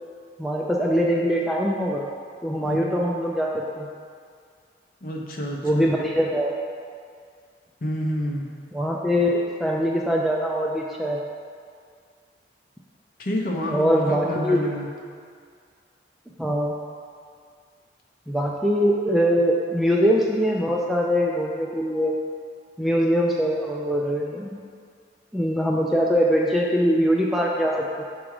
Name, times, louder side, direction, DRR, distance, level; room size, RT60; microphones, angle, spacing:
voice 1, 0.4-2.0 2.4-3.9 5.6-6.6 8.7-11.2 13.6-14.7 16.4-16.8 18.3-22.1 22.8-24.6 25.3-28.0, equal, ahead, -2 dB, 0.3 m, -22 dB
voice 2, 5.0-5.9 7.8-8.5 13.2-14.9, equal, 50° left, -1 dB, 0.8 m, -28 dB
7.1 x 3.6 x 4.8 m, 2.1 s
head